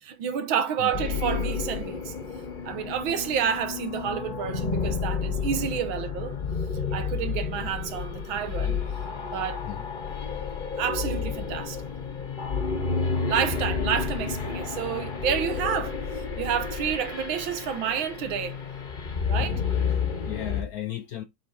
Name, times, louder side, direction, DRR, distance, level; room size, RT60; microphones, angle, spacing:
voice 1, 0.0-2.1 2.7-6.4 6.9-8.7 9.3-9.6 10.8-11.8 13.2-16.0 16.4-18.6 19.3-19.6, right 8 dB, 85° right, 1.8 m, -29 dB
sound 1, 0.9-20.6, left 5 dB, 35° left, 1.0 m, -31 dB
voice 2, 19.4-21.2, left 12 dB, 70° left, 0.9 m, -36 dB
7.7 x 3.4 x 4.3 m
omnidirectional pair, 2.1 m